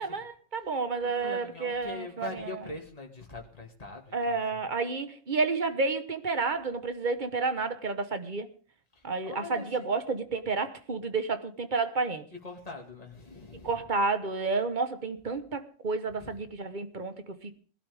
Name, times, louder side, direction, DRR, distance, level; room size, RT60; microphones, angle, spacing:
voice 1, 0.0-2.3 4.1-8.5 9.0-12.2 13.6-17.6, right 4 dB, 40° right, 1.4 m, -30 dB
voice 2, 1.0-4.6 8.9-10.0 12.4-13.8 16.1-16.4, left 3 dB, 30° left, 2.6 m, -43 dB
21.5 x 12.0 x 3.6 m
omnidirectional pair, 1.3 m